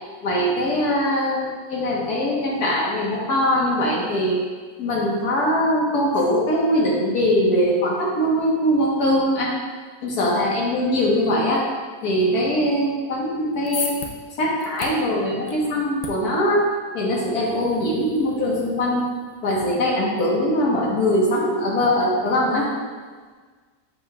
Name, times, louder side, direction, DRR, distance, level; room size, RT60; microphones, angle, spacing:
voice 1, 0.2-4.4 4.8-9.5 10.0-11.6 12.0-14.0 14.4-16.7 16.9-19.1 19.4-22.7, equal, 85° left, -3 dB, 1.7 m, -21 dB
sound 1, 13.3-19.7, left 3 dB, 60° left, 0.4 m, -38 dB
7.6 x 5.7 x 2.3 m, 1.5 s
omnidirectional pair, 1.6 m